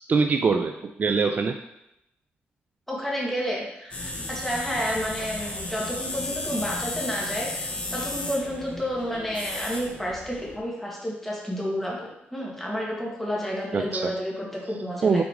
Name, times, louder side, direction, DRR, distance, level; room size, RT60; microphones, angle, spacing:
voice 1, 0.1-1.6 13.7-14.1 15.0-15.2, right 4 dB, 45° right, 6 dB, 0.4 m, -23 dB
voice 2, 2.9-7.5 7.9-15.2, equal, 5° left, -4 dB, 2.0 m, -30 dB
sound 1, 3.9-10.6, left 2 dB, 30° left, 1.2 m, -34 dB
6.0 x 3.9 x 5.0 m, 0.82 s
cardioid pair, 105°, 4 cm